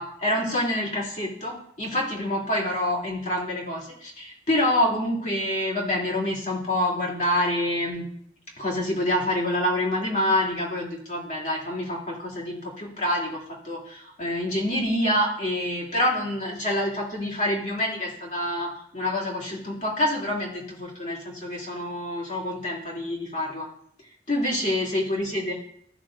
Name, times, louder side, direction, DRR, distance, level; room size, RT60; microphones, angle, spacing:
voice 1, 0.0-8.0 8.6-23.7 24.3-25.5, left 1 dB, 40° left, -4 dB, 2.8 m, -27 dB
15.0 x 6.7 x 2.5 m, 0.66 s
head